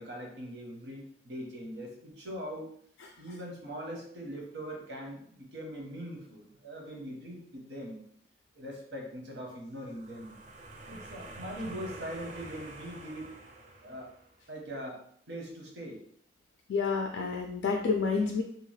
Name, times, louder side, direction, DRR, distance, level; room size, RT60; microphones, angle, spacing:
voice 1, 0.0-2.7 3.2-8.0 8.5-10.3 10.8-13.3 13.8-14.1 14.5-15.0 15.3-16.0, equal, 90° right, 0 dB, 0.9 m, -41 dB
sound 1, 9.7-14.4, right 2 dB, 40° right, 0.4 m, -48 dB
voice 2, 16.7-18.4, left 4 dB, 90° left, 2 dB, 0.3 m, -29 dB
2.8 x 2.3 x 3.1 m, 0.64 s
head